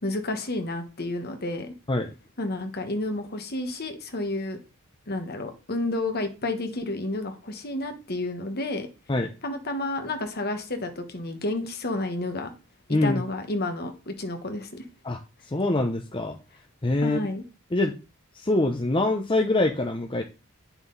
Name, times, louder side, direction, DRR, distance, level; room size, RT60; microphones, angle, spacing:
voice 1, 0.0-1.7 2.4-4.6 5.1-8.9 9.4-12.5 13.0-14.9 17.0-17.4, left 2 dB, 45° left, 1.4 m, -30 dB
voice 2, 12.9-13.2 15.0-15.2 15.5-16.4 16.8-17.2 17.7-18.0 18.4-20.2, left 2 dB, 20° left, 0.6 m, -24 dB
9.0 x 5.9 x 4.0 m
head